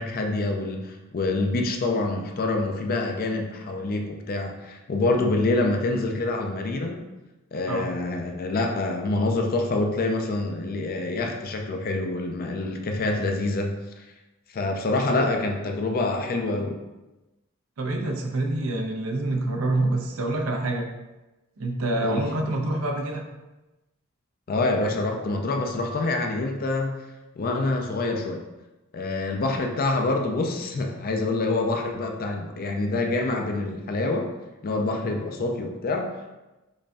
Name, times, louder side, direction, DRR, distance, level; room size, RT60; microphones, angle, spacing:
voice 1, 0.0-7.1 7.5-13.7 14.5-16.8 22.0-22.3 24.5-26.9 27.4-28.4 28.9-34.3 34.6-36.3, left 2 dB, 45° left, 3 dB, 0.4 m, -26 dB
voice 2, 17.8-20.9 21.6-23.2, right 2 dB, 75° right, 2 dB, 0.6 m, -26 dB
5.1 x 2.6 x 2.3 m, 1.1 s
head